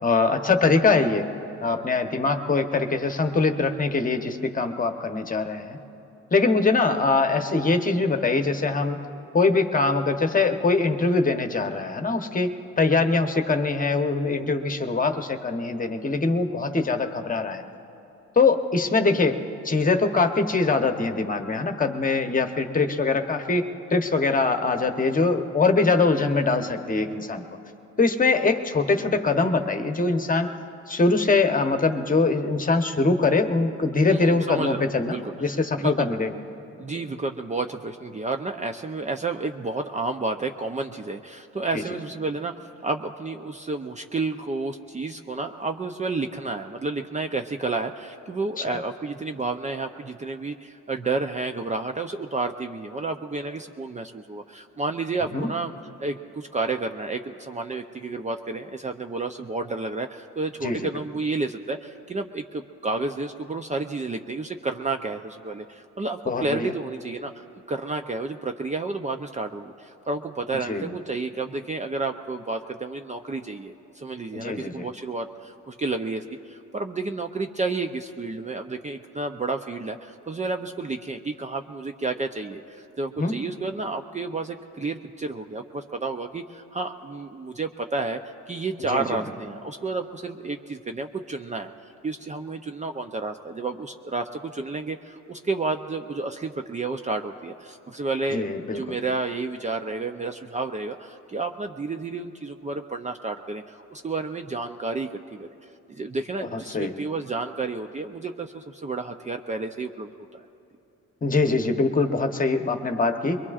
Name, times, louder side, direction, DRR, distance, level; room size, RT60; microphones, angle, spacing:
voice 1, 0.0-1.3 1.6-5.8 6.3-9.0 9.3-17.6 18.4-27.4 28.0-30.5 30.9-36.3 41.7-41.8 48.6-48.8 55.3-55.5 60.6-60.9 66.3-66.7 70.7-70.9 74.3-74.9 83.2-83.3 88.9-89.2 98.3-99.0 106.5-106.9 111.2-113.4, left 3 dB, 25° left, 6 dB, 1.0 m, -23 dB
voice 2, 34.1-35.3 35.8-36.1 36.8-42.5 42.8-55.7 56.0-67.3 67.7-88.2 88.5-91.7 92.0-105.5 105.9-110.5, right 3 dB, 25° right, 6 dB, 0.6 m, -31 dB
23.0 x 22.5 x 2.5 m, 2.9 s
cardioid pair, 90°, 30 cm